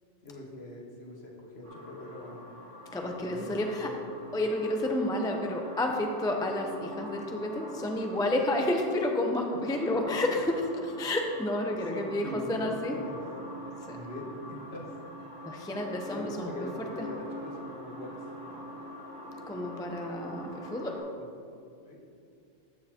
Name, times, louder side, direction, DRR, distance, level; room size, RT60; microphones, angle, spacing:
voice 1, 0.2-2.5 3.1-3.5 3.8-4.0 11.9-12.7 13.0-13.2 13.9-14.8 16.1-18.2 21.9-22.0, left 1 dB, 60° left, -1 dB, 1.6 m, -42 dB
sound 1, 1.6-21.0, equal, 45° right, 1.8 m, -44 dB
voice 2, 2.9-3.9 4.3-10.5 10.8-13.0 13.9-14.0 15.5-16.7 17.0-17.1 19.5-21.0, left 1 dB, 5° left, 2 dB, 0.4 m, -30 dB
14.0 x 6.6 x 2.9 m, 2.4 s
omnidirectional pair, 1.2 m